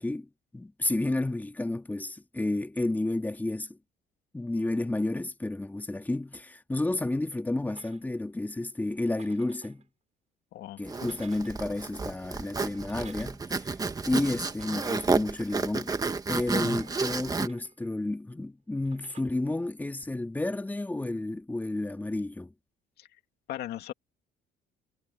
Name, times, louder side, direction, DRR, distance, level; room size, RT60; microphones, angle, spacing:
voice 1, 0.0-3.8 4.3-9.8 10.8-13.7 14.1-16.0 16.3-22.5, left 2 dB, 10° left, 2.4 m, -31 dB
sound 1, 7.7-8.3 9.0-9.9 10.8-11.7 12.6-13.5 14.5-15.3 16.2-17.9 18.8-19.2, right 7 dB, 40° right, 5.6 m, -54 dB
voice 2, 10.5-11.1 23.0-23.1 23.5-23.9, left 13 dB, 75° left, 2.3 m, -38 dB
Zipper (clothing), 10.9-17.5, right 4 dB, 20° right, 1.6 m, -31 dB
cardioid pair, 110°, 17 cm